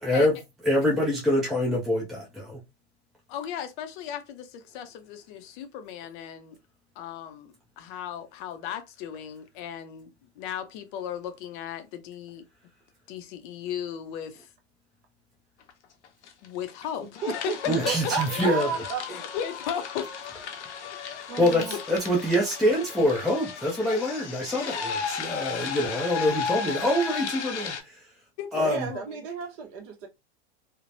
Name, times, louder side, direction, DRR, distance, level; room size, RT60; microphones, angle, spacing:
voice 1, 0.0-0.4 0.6-2.6 17.7-18.7 21.1-27.9 28.5-28.9, left 1 dB, ahead, 0.4 m, -25 dB
voice 2, 3.3-6.6 7.0-10.1 10.4-12.4 13.1-14.5 16.4-17.5 18.3-18.5 19.1-20.1 20.6-21.2 28.4-29.2, left 9 dB, 50° left, 0.5 m, -36 dB
sound 1, 15.7-15.8 16.0-16.9 17.1-27.8, left 6 dB, 85° left, 0.7 m, -35 dB
voice 3, 17.2-17.6 17.8-19.2 21.3-21.8 28.5-30.1, right 5 dB, 40° right, 0.9 m, -33 dB
3.1 x 2.1 x 2.6 m
hypercardioid pair, 110°, 34 cm